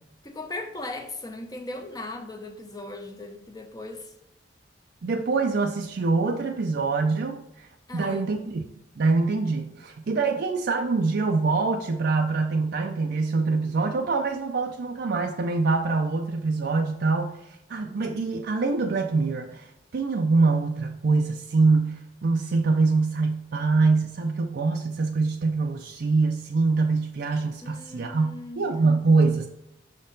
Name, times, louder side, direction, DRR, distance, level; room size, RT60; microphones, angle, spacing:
voice 1, 0.2-4.1 7.9-8.3 27.6-28.7, left 2 dB, 20° left, 0.6 m, -38 dB
voice 2, 5.0-7.7 7.9-8.6 9.0-29.5, right 3 dB, 60° right, 0.4 m, -24 dB
6.1 x 4.3 x 3.9 m
head